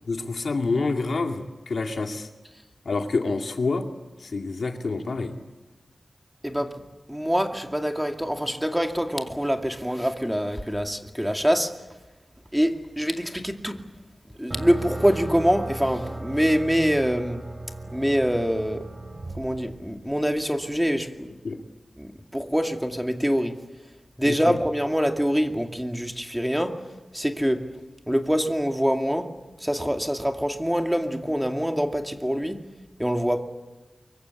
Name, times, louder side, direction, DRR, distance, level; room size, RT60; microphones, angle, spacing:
voice 1, 0.1-2.3 2.9-3.8 4.2-5.4 21.4-21.6 24.2-24.6, left 3 dB, 75° left, 2.3 m, -27 dB
voice 2, 6.4-11.7 12.5-13.9 14.4-17.4 17.9-18.9 19.3-21.3 22.0-23.6 24.2-26.9 27.1-27.8 28.1-32.7 33.0-33.4, equal, 5° right, 2.3 m, -25 dB
sound 1, 14.5-20.4, right 2 dB, 30° right, 3.4 m, -36 dB
24.5 x 23.5 x 8.4 m
wide cardioid pair, 80°, 0 cm